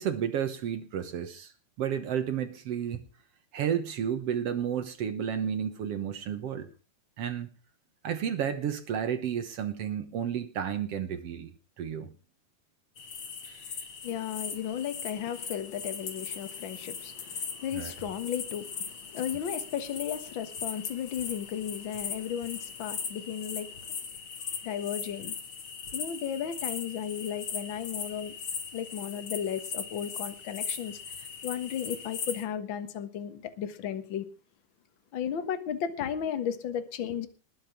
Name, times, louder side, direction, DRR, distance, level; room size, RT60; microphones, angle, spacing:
voice 1, 0.0-1.5 1.8-3.0 3.5-6.7 7.2-7.5 8.0-11.5 11.8-12.1 13.4-13.7 17.7-17.9, right 8 dB, 65° right, 10 dB, 1.5 m, -32 dB
sound 1, 13.0-32.5, left 6 dB, 45° left, 2.1 m, -39 dB
voice 2, 14.0-24.0 24.6-25.3 25.9-28.3 28.7-34.3 35.1-37.3, left 9 dB, 60° left, 10 dB, 1.3 m, -35 dB
20.0 x 7.2 x 5.9 m, 0.35 s
omnidirectional pair, 4.3 m